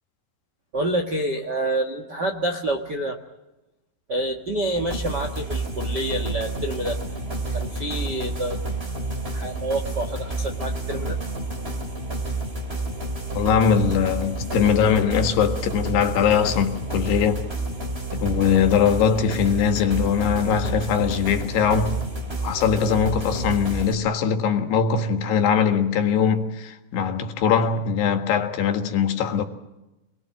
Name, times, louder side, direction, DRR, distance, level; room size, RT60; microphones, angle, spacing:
voice 1, 0.7-3.2 4.1-7.0 7.5-8.6 9.3-11.2, right 1 dB, 60° right, 1.1 m, -27 dB
sound 1, 4.7-23.9, right 2 dB, 20° right, 2.1 m, -29 dB
voice 2, 13.3-17.5 18.1-22.0 22.4-29.4, left 7 dB, 80° left, 3.8 m, -21 dB
27.0 x 21.5 x 7.6 m
omnidirectional pair, 4.8 m